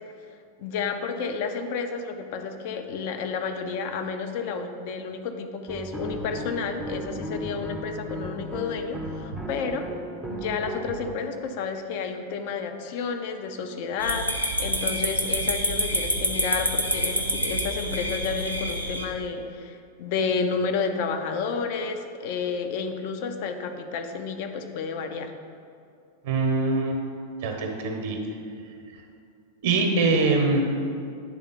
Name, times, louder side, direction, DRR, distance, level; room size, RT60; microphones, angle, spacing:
voice 1, 0.6-9.9 10.2-25.3, left 5 dB, 50° left, 6 dB, 0.6 m, -31 dB
sound 1, 5.7-11.1, right 1 dB, 5° right, 0.6 m, -36 dB
sound 2, 14.0-19.1, equal, 90° left, 0.6 m, -27 dB
voice 2, 26.2-27.0 27.4-28.2 29.6-30.7, right 3 dB, 55° right, 2 dB, 0.9 m, -23 dB
9.8 x 3.6 x 4.0 m, 2.4 s
figure-of-eight pair, 90°, 0 cm